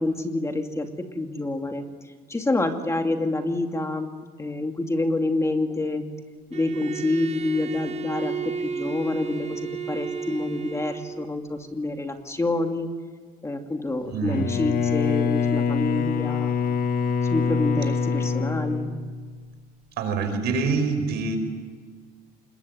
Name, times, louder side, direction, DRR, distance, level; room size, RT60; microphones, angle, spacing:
voice 1, 0.0-1.9 2.3-4.1 4.4-6.0 6.5-9.6 9.9-12.9 13.4-16.8 17.3-19.0, left 2 dB, 15° left, 5 dB, 2.4 m, -27 dB
Bowed string instrument, 6.5-11.3, right 6 dB, 40° right, 1.5 m, -33 dB
voice 2, 14.1-14.5 20.0-21.4, right 4 dB, 75° right, 7 dB, 5.4 m, -25 dB
Bowed string instrument 2, 14.2-19.6, left 6 dB, 60° left, 1.7 m, -25 dB
26.5 x 21.5 x 9.4 m, 1.5 s
cardioid pair, 110°, 17 cm